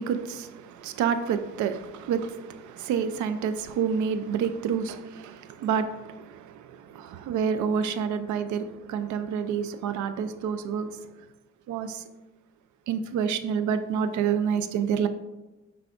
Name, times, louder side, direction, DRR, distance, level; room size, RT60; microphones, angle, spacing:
voice 1, 0.0-11.0 11.7-12.0 12.9-15.1, right 7 dB, 75° right, 0.5 m, -28 dB
5.8 x 3.6 x 2.4 m
cardioid pair, 90°, 30 cm